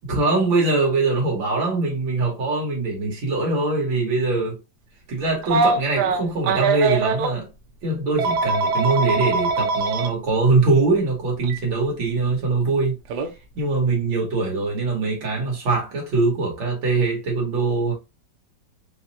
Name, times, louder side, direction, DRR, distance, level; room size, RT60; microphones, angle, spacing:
voice 1, 0.1-4.6 5.1-7.5 7.8-13.0 13.6-17.9, right 3 dB, 90° right, 2.2 m, -22 dB
Telephone, 5.4-7.3 8.2-10.1 11.4-11.6 13.1-13.3, right 4 dB, 70° right, 1.1 m, -22 dB
5.0 x 2.2 x 2.7 m
omnidirectional pair, 2.0 m